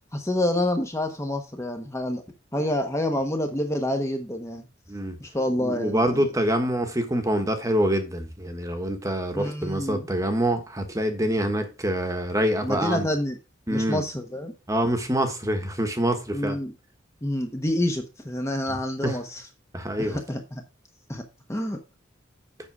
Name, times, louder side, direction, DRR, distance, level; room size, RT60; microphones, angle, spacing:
voice 1, 0.1-2.2 2.5-4.6 5.2-6.3 9.3-10.1 12.6-13.4 13.7-14.5 16.3-16.7 17.2-19.4 20.0-20.6 21.1-21.2 21.5-21.8, left 1 dB, 15° left, 1.0 m, -28 dB
voice 2, 5.6-13.1 13.7-14.0 14.7-16.6 18.7-19.2 19.7-20.2, right 1 dB, 15° right, 1.3 m, -26 dB
7.6 x 6.8 x 4.7 m
head